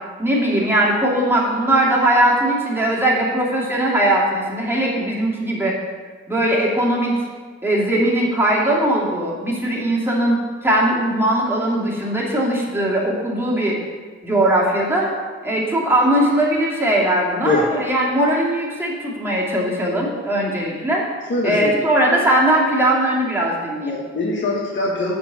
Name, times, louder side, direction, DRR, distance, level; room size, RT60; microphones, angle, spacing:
voice 1, 0.2-5.7 6.3-7.1 7.6-13.8 14.2-15.1 15.4-21.0 21.4-23.9, right 1 dB, 5° right, -5 dB, 2.5 m, -19 dB
voice 2, 21.3-21.8 23.9-25.1, left 2 dB, 40° left, -3 dB, 1.4 m, -22 dB
7.6 x 4.7 x 6.6 m, 1.5 s
cardioid pair, 90°, 30 cm